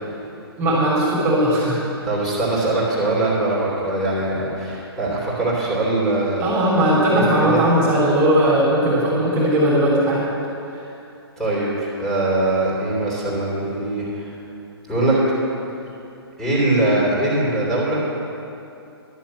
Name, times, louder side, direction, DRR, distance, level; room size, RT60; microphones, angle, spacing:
voice 1, 0.6-1.8 6.4-10.3, right 1 dB, 20° right, -6 dB, 3.0 m, -18 dB
voice 2, 2.0-6.5 7.0-7.6 11.4-14.3 14.9-15.2 16.4-18.0, right 2 dB, ahead, -8 dB, 3.4 m, -22 dB
11.5 x 7.3 x 7.6 m, 2.7 s
figure-of-eight pair, 130°, 14 cm